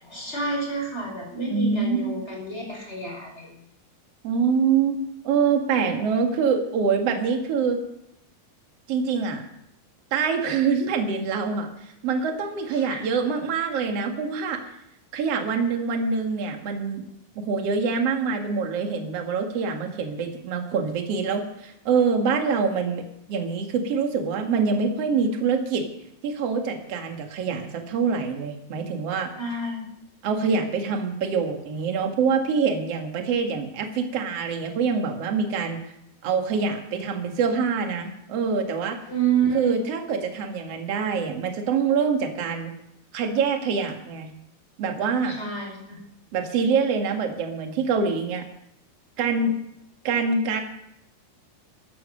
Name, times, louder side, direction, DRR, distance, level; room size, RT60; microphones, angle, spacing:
voice 1, 0.0-3.6 12.7-13.0 29.4-29.9 39.1-39.8 45.2-46.0, right 5 dB, 15° left, -1 dB, 5.1 m, -29 dB
voice 2, 1.5-2.2 4.2-5.0 5.2-7.8 8.9-9.4 10.1-11.7 12.0-14.6 15.1-17.1 17.4-25.8 26.2-29.3 30.2-35.8 36.2-39.0 39.5-42.7 43.1-44.3 44.8-45.4 46.3-48.5 49.2-49.5 50.0-50.6, right 5 dB, 45° right, 4 dB, 2.5 m, -25 dB
14.5 x 12.5 x 6.5 m, 0.79 s
omnidirectional pair, 4.5 m